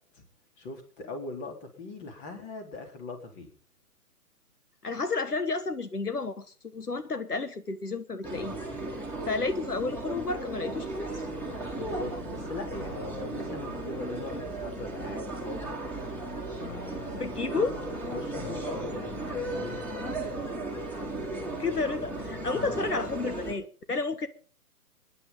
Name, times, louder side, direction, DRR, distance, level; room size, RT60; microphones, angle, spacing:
voice 1, 0.6-3.5 11.8-15.8 16.6-17.3 18.1-20.5 22.5-22.8, left 2 dB, 25° left, 4 dB, 3.9 m, -41 dB
voice 2, 4.8-6.5 6.7-8.5 9.0-11.1 17.1-17.7 21.6-24.3, left 3 dB, 90° left, 11 dB, 1.4 m, -31 dB
sound 1, 8.2-23.5, right 2 dB, 5° left, 3.4 m, -36 dB
26.5 x 11.0 x 3.9 m, 0.41 s
figure-of-eight pair, 130°, 45 cm